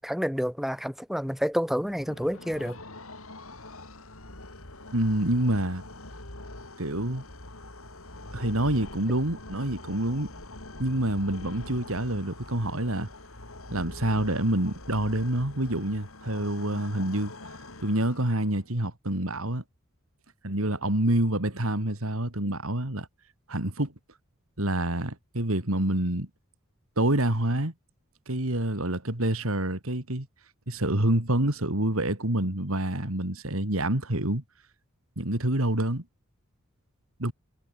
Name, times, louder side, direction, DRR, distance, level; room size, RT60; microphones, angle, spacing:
voice 1, 0.0-2.8, equal, ahead, 6.5 m, -29 dB
sound 1, 1.7-18.7, left 2 dB, 75° left, 5.9 m, -44 dB
voice 2, 4.9-5.8 6.8-7.2 8.3-10.3 10.8-13.1 13.7-17.3 17.8-19.6 20.4-23.1 23.5-23.9 24.6-26.3 27.0-27.7 28.3-30.3 30.7-34.4 35.2-36.0 37.2-37.3, right 1 dB, 75° right, 3.3 m, -27 dB
head